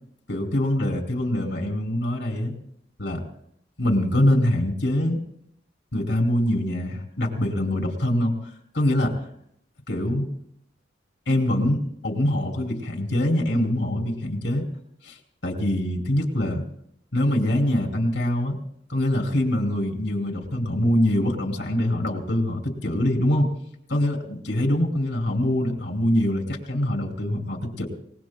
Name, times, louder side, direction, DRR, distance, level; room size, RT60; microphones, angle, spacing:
voice 1, 0.3-2.5 3.0-3.2 3.8-5.2 5.9-8.4 8.7-9.2 9.9-10.2 11.3-14.6 15.0-15.2 15.4-16.6 17.1-18.6 18.9-23.5 23.9-27.9, left 1 dB, 65° left, 2 dB, 3.1 m, -24 dB
29.0 x 19.0 x 2.3 m, 0.72 s
head